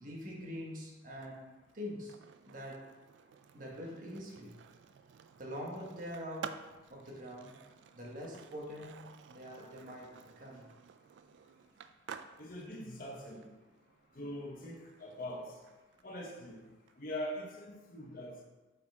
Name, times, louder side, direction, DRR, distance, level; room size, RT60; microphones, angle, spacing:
voice 1, 0.0-1.5 1.7-2.1 2.4-2.9 3.5-4.6 5.4-7.6 7.9-10.7, equal, 45° right, -2 dB, 1.3 m, -44 dB
Skateboard, 1.1-16.9, right 7 dB, 70° right, 0.3 m, -53 dB
voice 2, 12.4-13.5 14.1-15.6 16.0-16.6 17.0-18.3, left 1 dB, 45° left, -1 dB, 1.1 m, -42 dB
6.6 x 4.2 x 3.5 m, 1.1 s
head